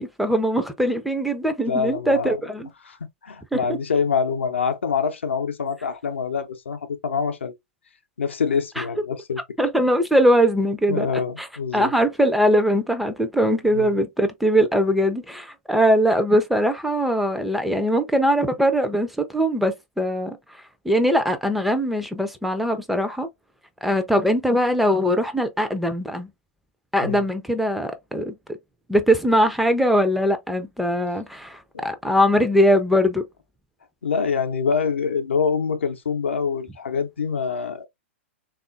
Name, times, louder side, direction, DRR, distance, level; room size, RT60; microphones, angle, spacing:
voice 1, 0.0-2.7 3.5-3.8 8.8-8.9 9.6-11.5 11.7-20.4 20.8-23.3 23.8-26.3 26.9-28.3 28.9-33.2, equal, ahead, 0.4 m, -21 dB
voice 2, 1.7-2.4 2.8-3.0 3.2-7.6 8.2-9.4 10.9-11.9 13.7-13.9 27.0-27.2 31.7-31.8 34.0-37.9, left 6 dB, 70° left, 0.6 m, -25 dB
3.5 x 2.4 x 2.4 m
figure-of-eight pair, 105°, 7 cm